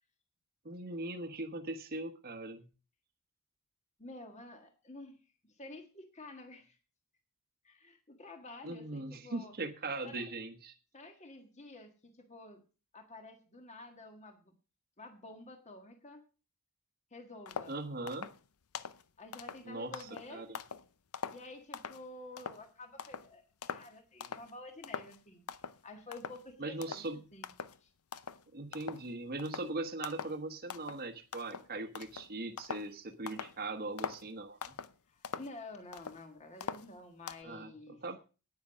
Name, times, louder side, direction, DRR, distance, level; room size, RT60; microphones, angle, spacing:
voice 1, 0.6-2.7 8.6-10.7 17.7-18.3 19.7-20.6 26.6-27.2 28.5-34.7 37.4-37.7 38.0-38.2, right 2 dB, 45° right, 5 dB, 1.2 m, -40 dB
voice 2, 4.0-5.1 5.4-6.8 7.6-9.5 10.0-10.3 10.9-12.6 12.9-14.5 15.0-16.2 17.1-17.7 19.2-20.5 21.3-23.4 23.7-27.0 27.3-27.5 27.8-27.9 35.1-38.0, left 2 dB, 30° left, 5 dB, 1.6 m, -50 dB
sound 1, 17.5-17.8 18.1-18.4 18.7-19.0 19.3-20.9 21.1-22.0 22.4-22.7 23.0-23.3 23.6-23.9 24.2-24.5 24.8-25.2 25.5-25.8 26.1-26.5 26.8-27.1 27.4-27.8 28.1-28.4 28.7-29.1 29.4-29.7 30.0-30.4 30.7-31.0 31.3-32.9 33.3-33.6 34.0-34.3 34.6-34.9 35.2-36.2 36.6-37.4, left 6 dB, 80° left, 0.7 m, -43 dB
9.7 x 9.7 x 6.2 m, 0.35 s
head